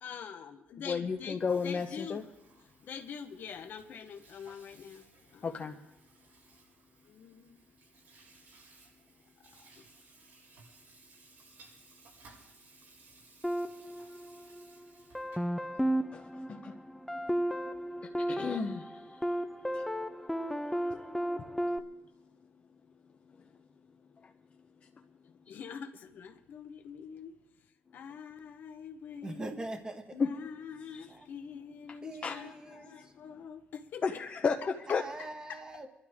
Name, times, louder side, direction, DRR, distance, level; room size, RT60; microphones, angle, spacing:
voice 1, 0.0-2.2 2.8-5.7 7.1-7.6 9.6-9.8 25.5-27.4 27.9-29.5 30.1-34.2 35.2-35.6, left 7 dB, 60° left, 6 dB, 1.1 m, -45 dB
voice 2, 0.9-2.2 5.4-5.8 16.1-16.2 16.5-16.8 18.3-19.0 19.7-19.8 30.2-30.3 30.9-31.0 32.2-32.4 34.0-35.0, left 5 dB, 35° left, 2 dB, 0.8 m, -32 dB
Water tap faucet / Sink (filling or washing), 1.2-15.5, right 3 dB, 80° right, 6.7 m, -60 dB
sound 1, 13.4-14.7 15.1-21.8, equal, 5° left, 0.7 m, -34 dB
voice 3, 29.2-30.2 31.1-31.3 32.0-33.1 34.9-35.9, right 2 dB, 20° right, 5 dB, 1.5 m, -42 dB
25.5 x 12.0 x 3.6 m, 0.93 s
cardioid pair, 115°, 4 cm